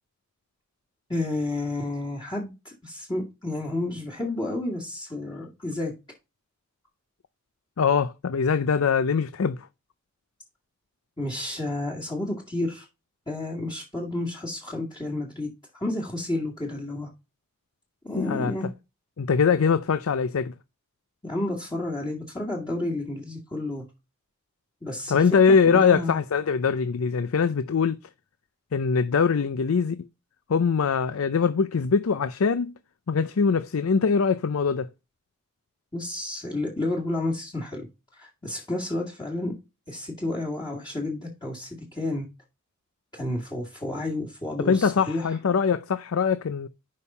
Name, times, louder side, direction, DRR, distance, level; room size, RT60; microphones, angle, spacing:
voice 1, 1.1-5.9 11.2-12.9 13.3-15.5 15.8-17.1 18.0-18.7 21.2-23.8 24.8-26.2 35.9-37.9 38.1-39.5 39.9-42.3 43.1-45.3, left 2 dB, 20° left, 1.9 m, -31 dB
voice 2, 7.8-9.7 18.2-18.5 19.2-20.5 25.1-28.0 28.7-30.0 30.5-32.7 33.1-34.9 44.7-46.7, left 5 dB, 75° left, 0.5 m, -22 dB
6.4 x 5.5 x 5.4 m
head